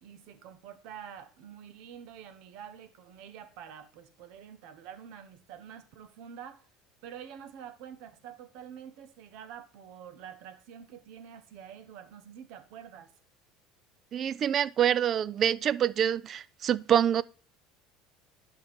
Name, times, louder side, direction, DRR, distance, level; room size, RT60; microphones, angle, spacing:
voice 1, 0.0-6.7 7.0-13.1, right 8 dB, 70° right, 1.1 m, -47 dB
voice 2, 14.1-17.2, right 9 dB, 40° right, 0.3 m, -26 dB
10.5 x 5.9 x 3.6 m
cardioid pair, 135°, 0 cm